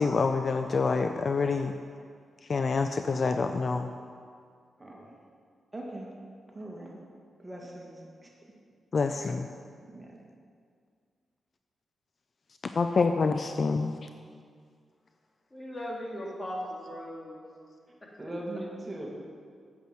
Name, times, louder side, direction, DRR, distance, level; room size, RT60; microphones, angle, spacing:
voice 1, 0.0-1.7 2.5-3.9 8.9-9.5 12.7-13.9, left 4 dB, 50° left, 7 dB, 0.5 m, -26 dB
voice 2, 4.8-5.1 5.7-6.1 6.5-6.9 7.4-7.9 8.2-8.3 9.0-9.1 9.8-10.2 18.2-19.1, right 1 dB, 20° right, -2 dB, 2.1 m, -40 dB
voice 3, 15.5-17.4 18.0-18.1, equal, 25° left, -3 dB, 2.5 m, -38 dB
8.3 x 8.0 x 5.9 m, 2.1 s
cardioid pair, 70°, 0 cm